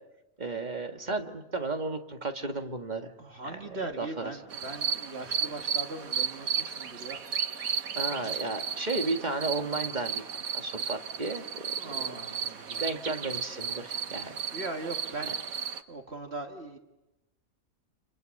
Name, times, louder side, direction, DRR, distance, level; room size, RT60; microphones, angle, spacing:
voice 1, 0.4-3.1 4.0-4.1 7.9-11.9 12.8-14.5, right 3 dB, 30° right, 5 dB, 2.0 m, -33 dB
voice 2, 3.2-7.3 7.7-8.0 11.8-12.9 14.5-15.6 15.9-16.8, right 2 dB, 45° right, 4 dB, 2.1 m, -40 dB
sound 1, 4.5-15.8, right 7 dB, 80° right, 1.6 m, -34 dB
29.5 x 29.0 x 6.6 m, 0.95 s
omnidirectional pair, 1.5 m